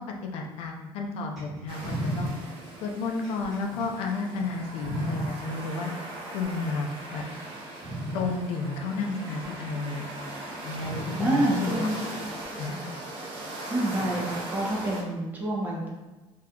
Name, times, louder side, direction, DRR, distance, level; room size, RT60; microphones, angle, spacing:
voice 1, 0.0-2.3 2.8-5.9 6.3-7.2 8.1-10.1 10.6-11.7 12.6-12.8, left 3 dB, 75° left, 2 dB, 0.4 m, -32 dB
sound 1, 1.4-5.3 6.2-6.9 7.4-7.5 7.8-8.3 9.4-9.5 10.8-11.3 12.4-12.5, right 1 dB, ahead, 1.1 m, -35 dB
sound 2, 1.7-15.0, right 1 dB, 60° right, 0.6 m, -39 dB
voice 2, 11.2-12.0 13.7-15.9, right 1 dB, 15° right, -3 dB, 0.6 m, -27 dB
2.7 x 2.3 x 3.5 m, 1.1 s
cardioid pair, 165°, 10 cm